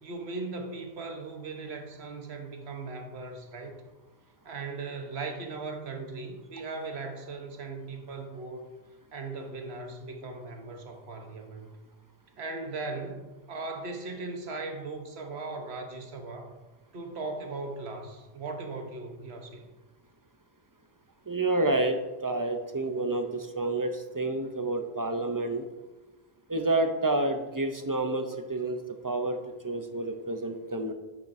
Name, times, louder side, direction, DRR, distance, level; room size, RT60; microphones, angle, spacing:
voice 1, 0.0-3.8 4.4-8.7 9.1-11.7 12.4-16.5 16.9-19.7, right 3 dB, 85° right, 5 dB, 1.3 m, -38 dB
voice 2, 21.3-25.6 26.5-29.4 29.6-30.9, right 2 dB, 30° right, 6 dB, 0.4 m, -29 dB
9.4 x 7.3 x 2.6 m, 1.2 s
omnidirectional pair, 1.1 m